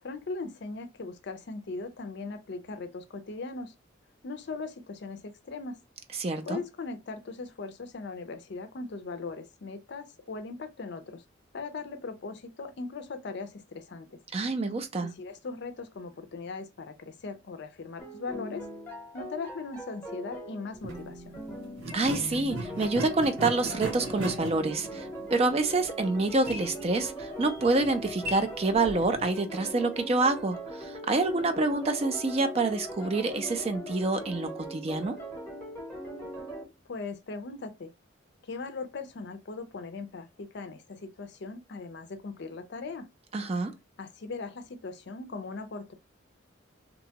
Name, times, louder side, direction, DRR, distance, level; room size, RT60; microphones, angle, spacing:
voice 1, 0.0-3.7 4.2-5.8 6.4-11.2 11.5-14.2 15.0-18.7 19.1-21.3 36.9-37.9 38.4-43.1 44.0-45.9, left 3 dB, 55° left, 0.5 m, -39 dB
voice 2, 6.2-6.6 14.3-15.1 21.9-35.2 43.3-43.7, right 3 dB, 30° right, 0.4 m, -27 dB
sound 1, 18.0-36.6, equal, 10° left, 0.9 m, -40 dB
sound 2, 20.7-21.0 21.8-29.3, right 2 dB, 85° right, 0.9 m, -39 dB
2.8 x 2.2 x 2.7 m
head